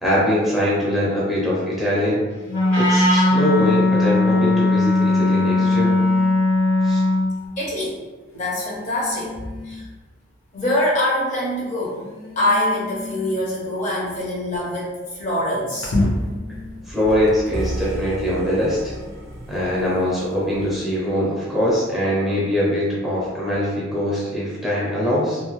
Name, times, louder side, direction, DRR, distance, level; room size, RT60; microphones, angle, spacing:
voice 1, 0.0-2.2 2.8-5.9 6.8-7.0 16.9-18.9 19.5-25.4, equal, ahead, -8 dB, 0.5 m, -22 dB
Wind instrument woodwind instrument, 2.5-7.3, left 2 dB, 60° left, 1.0 m, -18 dB
sound 1, 2.7-3.0 4.8-6.6 7.5-7.6 8.3-10.0 10.5-11.1 11.8-17.8 18.6-20.7, left 2 dB, 85° left, 0.7 m, -32 dB
voice 2, 7.6-8.0 8.3-9.3 9.6-9.8 10.5-12.0 12.4-15.9, left 1 dB, 35° left, -4 dB, 0.7 m, -24 dB
sound 2, 17.5-21.6, right 1 dB, 50° right, 0.6 m, -34 dB
2.7 x 2.2 x 2.9 m, 1.3 s
head